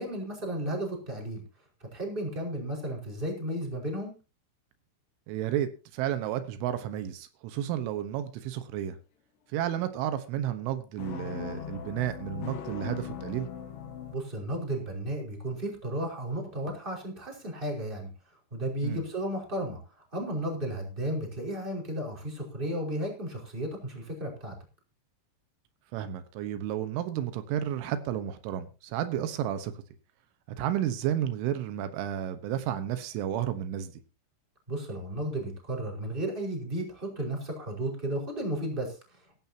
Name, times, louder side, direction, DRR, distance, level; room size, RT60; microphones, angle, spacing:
voice 1, 0.0-1.4 1.9-4.1 14.1-18.1 18.5-19.8 20.1-24.5 34.7-39.0, right 1 dB, 10° right, 4.8 m, -33 dB
voice 2, 5.3-9.0 9.5-13.5 18.8-19.0 25.9-29.7 30.6-33.9, right 11 dB, 85° right, 3.7 m, -32 dB
sound 1, 11.0-14.2, left 8 dB, 70° left, 3.7 m, -39 dB
16.5 x 15.5 x 2.9 m
omnidirectional pair, 5.5 m